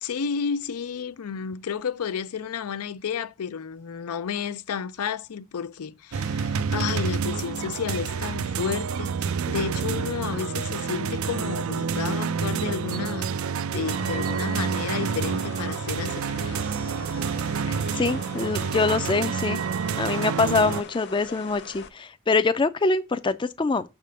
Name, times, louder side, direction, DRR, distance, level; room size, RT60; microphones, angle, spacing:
voice 1, 0.0-16.7, left 7 dB, 90° left, 0.5 m, -32 dB
sound 1, 6.1-20.8, right 6 dB, 70° right, 0.4 m, -28 dB
sound 2, 13.8-21.9, left 5 dB, 50° left, 0.9 m, -43 dB
voice 2, 17.7-19.6 20.0-23.8, left 3 dB, 20° left, 0.4 m, -24 dB
6.6 x 3.6 x 6.2 m
head